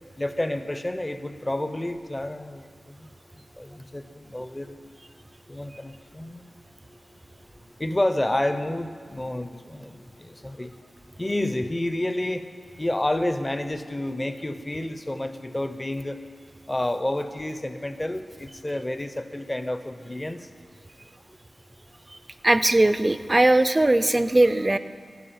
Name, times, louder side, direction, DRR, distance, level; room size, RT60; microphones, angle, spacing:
voice 1, 0.2-2.6 3.6-4.0 4.3-4.8 5.5-6.5 7.8-10.7 11.2-12.4 12.8-16.2 16.7-20.4, left 1 dB, 20° left, 9 dB, 0.7 m, -29 dB
voice 2, 22.4-24.8, right 2 dB, 25° right, 12 dB, 0.4 m, -19 dB
14.0 x 5.6 x 8.6 m, 2.1 s
wide cardioid pair, 80°, 0 cm